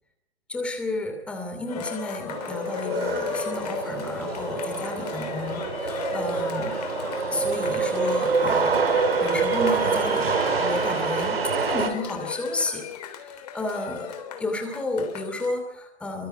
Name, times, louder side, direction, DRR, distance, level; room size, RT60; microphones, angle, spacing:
voice 1, 0.5-6.8 7.3-8.8 9.2-11.4 11.7-12.9 13.2-16.3, left 2 dB, 5° left, 5 dB, 2.6 m, -32 dB
Cheering, 1.7-15.5, left 7 dB, 35° left, 3.3 m, -35 dB
sound 1, 2.3-11.9, right 5 dB, 60° right, 4.5 m, -26 dB
28.0 x 24.5 x 4.6 m, 0.74 s
figure-of-eight pair, 145°, 34 cm